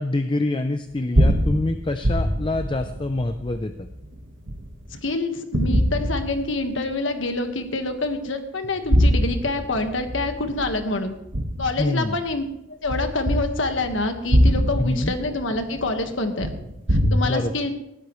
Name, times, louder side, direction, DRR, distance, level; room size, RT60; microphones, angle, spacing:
voice 1, 0.0-3.9 11.8-12.2 14.8-15.1 17.2-17.5, left 2 dB, 25° left, 8 dB, 0.6 m, -26 dB
sound 1, 0.9-5.0 5.5-6.9 7.3-7.4 8.6-12.3 12.8-17.1, equal, 70° right, 1.6 m, -23 dB
voice 2, 4.9-11.1 11.6-16.5 17.1-17.7, left 2 dB, 70° left, 6 dB, 1.6 m, -26 dB
19.5 x 13.0 x 3.2 m, 0.87 s
head